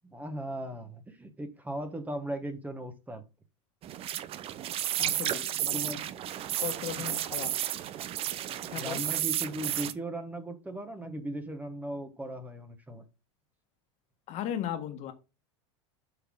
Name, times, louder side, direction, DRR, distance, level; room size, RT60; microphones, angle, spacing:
voice 1, 0.0-3.2 5.7-6.1 6.4-6.5 7.0-7.1 8.5-13.0, right 1 dB, 10° right, 1.3 m, -38 dB
sound 1, 3.8-9.9, right 12 dB, 40° right, 0.7 m, -32 dB
voice 2, 5.0-6.0 6.6-7.5 8.7-9.0 14.3-15.1, left 10 dB, 50° left, 1.5 m, -36 dB
8.2 x 5.8 x 3.7 m
hypercardioid pair, 110°, 16 cm